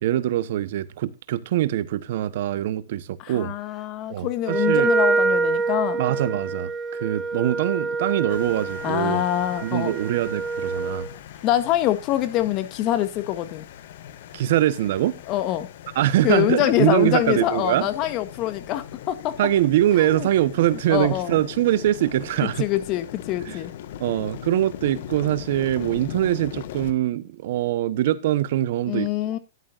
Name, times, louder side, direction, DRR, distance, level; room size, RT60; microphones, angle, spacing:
voice 1, 0.0-3.5 4.1-4.9 6.0-9.2 9.6-11.1 14.3-15.1 15.9-17.9 19.4-22.6 23.5-23.6 24.0-29.1, right 13 dB, 60° right, 1.0 m, -23 dB
voice 2, 3.2-6.0 8.8-9.9 11.4-13.6 15.3-15.7 16.2-19.4 20.0-20.3 20.7-21.4 22.4-23.7 28.9-29.4, left 13 dB, 35° left, 1.8 m, -25 dB
Wind instrument woodwind instrument, 4.4-11.1, right 4 dB, 20° right, 1.1 m, -26 dB
sound 1, 8.3-26.9, left 11 dB, 60° left, 1.4 m, -40 dB
13.0 x 11.0 x 2.5 m
hypercardioid pair, 135°, 0 cm